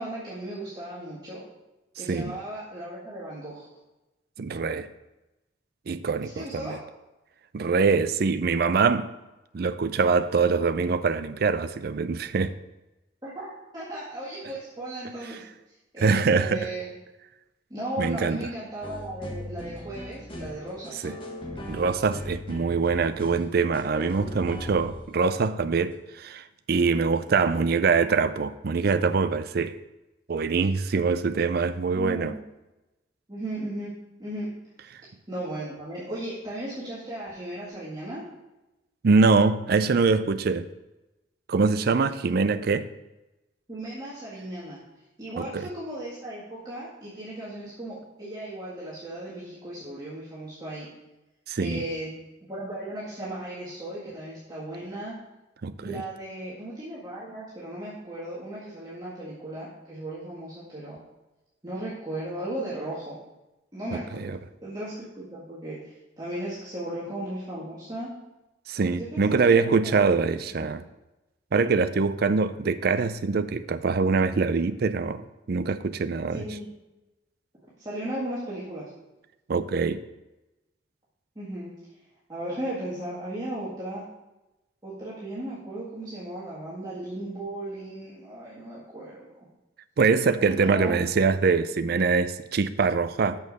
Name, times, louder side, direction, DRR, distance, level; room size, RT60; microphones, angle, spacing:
voice 1, 0.0-1.4 2.0-3.7 6.2-6.8 13.2-15.4 15.9-16.9 17.7-21.1 31.9-32.4 33.3-33.9 34.2-34.5 35.3-38.2 43.7-44.8 45.2-50.9 51.6-52.1 52.5-55.2 55.8-61.0 61.6-63.2 63.7-64.4 64.6-68.1 69.0-70.1 70.5-70.8 76.3-76.7 77.8-78.9 81.4-81.7 82.3-84.0 84.8-89.4 90.4-90.9, right 1 dB, 20° right, 1.9 m, -36 dB
voice 2, 4.4-4.9 5.9-6.8 7.5-9.1 9.5-12.5 16.0-16.7 18.0-18.5 21.0-21.2 21.7-29.8 30.3-32.3 34.9-35.0 39.0-40.7 41.5-42.9 45.4-45.7 51.5-51.9 55.6-56.0 63.9-64.4 68.7-70.8 71.5-76.4 79.5-80.0 90.0-93.4, right 4 dB, 55° right, 0.4 m, -24 dB
sound 1, 18.8-25.2 25.9-26.0, left 1 dB, 30° left, 1.3 m, -39 dB
7.0 x 6.4 x 5.3 m
head